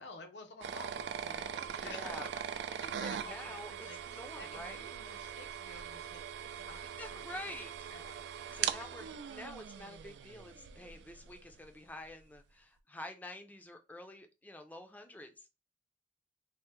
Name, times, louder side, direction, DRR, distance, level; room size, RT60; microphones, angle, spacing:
voice 1, 0.0-7.4 7.9-8.3 8.8-8.9, left 3 dB, 85° left, 0.6 m, -51 dB
sound 1, 0.6-11.4, right 8 dB, 90° right, 0.3 m, -41 dB
voice 2, 1.8-2.3 3.1-4.9 7.0-7.7 8.5-15.5, left 1 dB, 10° left, 0.3 m, -48 dB
3.3 x 2.1 x 3.0 m
head